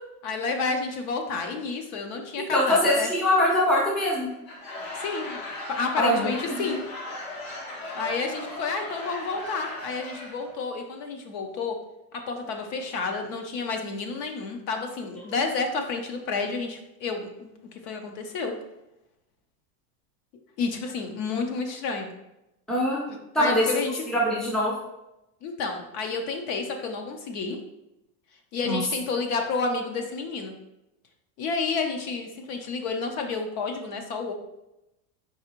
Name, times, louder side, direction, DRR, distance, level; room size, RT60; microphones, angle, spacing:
voice 1, 0.2-3.1 5.0-5.4 5.7-6.8 7.9-11.8 12.1-17.3 17.7-18.5 20.6-22.1 23.1-24.0 25.4-27.6 28.5-30.5 31.4-34.3, left 4 dB, 45° left, 4 dB, 0.6 m, -30 dB
voice 2, 2.5-4.3 6.0-6.6 22.7-23.0 23.3-23.7 24.1-24.7 28.6-28.8, left 1 dB, ahead, -5 dB, 0.5 m, -23 dB
Laughter / Crowd, 4.3-10.5, left 2 dB, 75° left, 1.4 m, -38 dB
4.8 x 3.2 x 2.9 m, 0.91 s
supercardioid pair, 145°, 45 cm